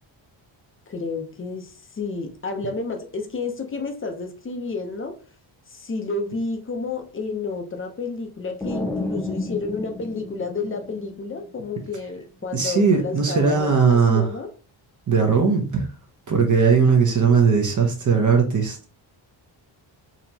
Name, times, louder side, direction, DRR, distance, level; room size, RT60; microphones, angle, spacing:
voice 1, 0.9-5.1 5.7-14.5, left 3 dB, 25° left, 4 dB, 0.7 m, -31 dB
sound 1, 8.6-11.4, left 2 dB, 5° left, 0.3 m, -31 dB
voice 2, 12.5-14.2 15.1-15.9 16.3-18.8, right 5 dB, 40° right, 3 dB, 0.9 m, -18 dB
4.0 x 3.0 x 2.8 m, 0.38 s
wide cardioid pair, 145°, 48 cm